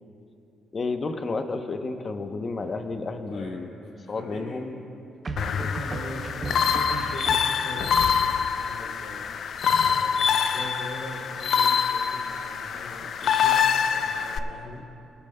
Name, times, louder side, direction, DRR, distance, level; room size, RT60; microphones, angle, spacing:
voice 1, 0.7-3.7 4.1-4.8, left 3 dB, 40° left, 7 dB, 0.8 m, -31 dB
sound 1, 2.6-3.2 5.2-7.9, right 3 dB, 35° right, 0.7 m, -36 dB
voice 2, 3.3-4.6 5.3-9.2 9.8-14.9, left 2 dB, 80° left, -3 dB, 2.5 m, -41 dB
sound 2, 5.4-14.4, left 7 dB, 65° left, 0.4 m, -25 dB
19.0 x 12.0 x 2.2 m, 2.8 s
cardioid pair, 90°, 0 cm